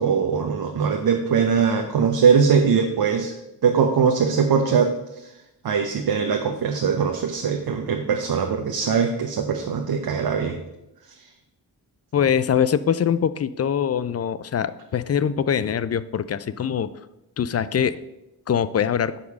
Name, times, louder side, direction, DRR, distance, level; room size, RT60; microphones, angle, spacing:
voice 1, 0.0-3.3 3.6-5.3 5.6-10.6, right 6 dB, 60° right, 3 dB, 0.8 m, -21 dB
voice 2, 12.1-16.9 17.4-18.0 18.5-19.1, left 8 dB, 40° left, 16 dB, 0.4 m, -23 dB
5.2 x 4.8 x 6.0 m, 0.91 s
supercardioid pair, 45°, 42 cm